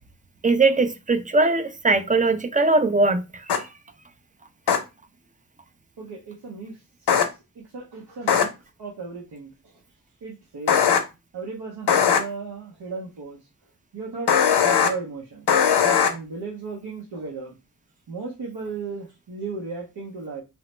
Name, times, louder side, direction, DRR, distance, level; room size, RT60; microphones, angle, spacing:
voice 1, 0.4-3.2, right 3 dB, 20° right, 0.3 m, -20 dB
sound 1, 3.5-3.6 4.7-4.8 7.1-7.3 8.3-8.4 10.7-11.0 11.9-12.2 14.3-14.9 15.5-16.1, left 7 dB, 90° left, 0.6 m, -18 dB
voice 2, 6.0-9.7 10.2-10.8 11.3-13.4 13.9-15.5 16.1-17.6 18.1-20.4, right 4 dB, 85° right, 0.7 m, -36 dB
3.0 x 2.0 x 3.0 m
cardioid pair, 60°, 39 cm